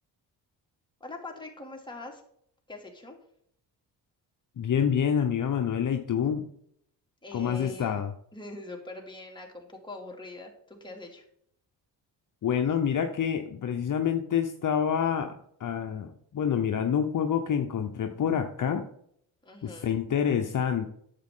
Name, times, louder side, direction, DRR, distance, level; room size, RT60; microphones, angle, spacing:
voice 1, 1.0-2.2 2.7-3.2 7.2-8.0 8.3-11.2 19.4-20.0, left 2 dB, 10° left, 0 dB, 2.7 m, -42 dB
voice 2, 4.6-6.5 7.3-8.1 12.4-15.3 15.6-18.9 19.6-20.8, left 8 dB, 45° left, 5 dB, 0.9 m, -27 dB
10.0 x 7.4 x 3.8 m, 0.69 s
cardioid pair, 85°, 42 cm